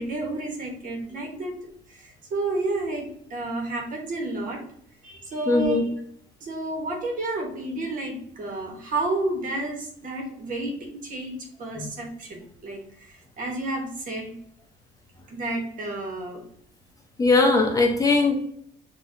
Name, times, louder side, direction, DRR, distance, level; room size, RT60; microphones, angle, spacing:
voice 1, 0.0-1.5 1.9-4.6 5.0-5.9 6.4-14.3 15.3-16.4, right 2 dB, 55° right, 1 dB, 1.6 m, -31 dB
voice 2, 5.5-5.8 11.8-11.9 17.2-18.4, left 3 dB, 20° left, 1 dB, 0.9 m, -20 dB
6.2 x 2.9 x 2.7 m, 0.67 s
cardioid pair, 110°, 17 cm